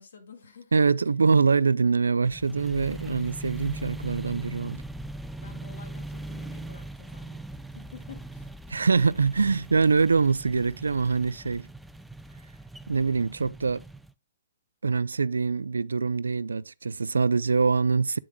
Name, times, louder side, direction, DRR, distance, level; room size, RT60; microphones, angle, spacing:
voice 1, 0.0-0.8 5.4-7.4 7.7-8.5, left 6 dB, 70° left, 2.2 m, -49 dB
voice 2, 0.7-4.8 8.7-11.7 12.9-13.8 14.8-18.2, right 4 dB, 90° right, 0.4 m, -24 dB
sound 1, 2.2-14.1, right 2 dB, ahead, 0.4 m, -40 dB
8.9 x 7.2 x 2.3 m
hypercardioid pair, 140°, 0 cm